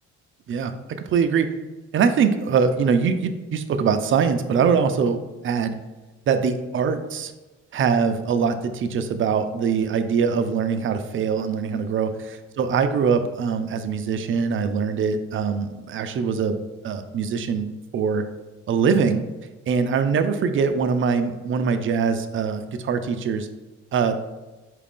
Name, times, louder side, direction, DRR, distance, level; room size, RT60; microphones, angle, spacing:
voice 1, 1.1-1.5 1.9-5.8 6.3-7.3 7.7-12.1 12.6-16.6 16.8-17.7 17.9-18.2 18.7-19.2 19.7-23.5 23.9-24.2, right 6 dB, 45° right, 9 dB, 0.4 m, -22 dB
4.7 x 2.4 x 3.6 m, 1.2 s
cardioid pair, 90°, 30 cm